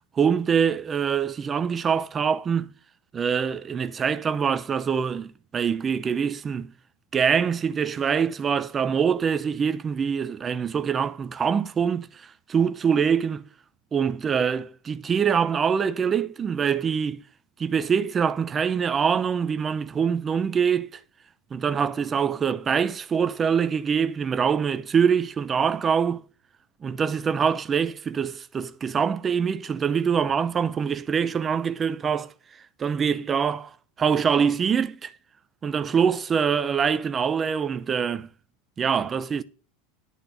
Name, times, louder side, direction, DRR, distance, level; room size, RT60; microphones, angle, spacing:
voice 1, 0.2-2.7 3.1-6.7 7.1-13.4 13.9-17.2 17.6-20.9 21.5-26.2 26.8-32.3 32.8-35.1 35.6-38.3 38.8-39.4, right 7 dB, 25° right, 0.6 m, -24 dB
11.0 x 3.9 x 7.1 m
figure-of-eight pair, 80°, 0 cm